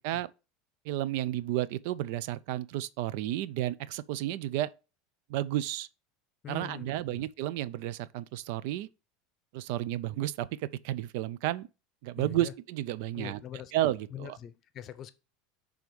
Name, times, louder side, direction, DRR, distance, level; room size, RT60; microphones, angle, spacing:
voice 1, 0.9-4.7 5.3-5.9 6.5-8.9 9.5-11.7 12.0-13.4 13.7-14.4, right 14 dB, 70° right, 0.4 m, -32 dB
voice 2, 6.4-7.2 12.2-12.5 13.1-13.7 14.1-15.1, left 10 dB, 40° left, 0.7 m, -43 dB
6.1 x 3.5 x 5.2 m
supercardioid pair, 120°, 0 cm